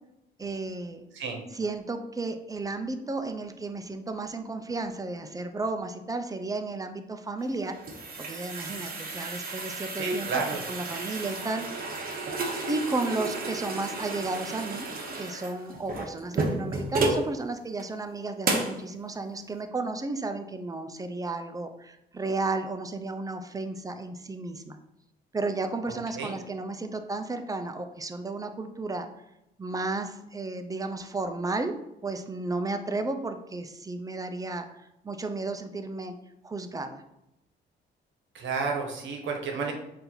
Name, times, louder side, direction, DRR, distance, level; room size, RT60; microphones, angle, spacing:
voice 1, 0.4-1.1 1.5-7.8 8.2-10.4 10.7-11.9 12.7-14.9 15.2-24.8 25.3-29.1 29.6-31.7 32.0-36.1 36.4-37.0, right 3 dB, 20° right, 7 dB, 0.4 m, -33 dB
sound 1, 7.4-17.3 17.8-17.9 18.4-18.8, right 3 dB, 45° right, 0.9 m, -32 dB
voice 2, 9.9-10.6 25.9-26.3 38.3-39.7, right 4 dB, 70° right, 2 dB, 1.0 m, -31 dB
4.3 x 2.6 x 3.9 m, 0.88 s
cardioid pair, 90°, 20 cm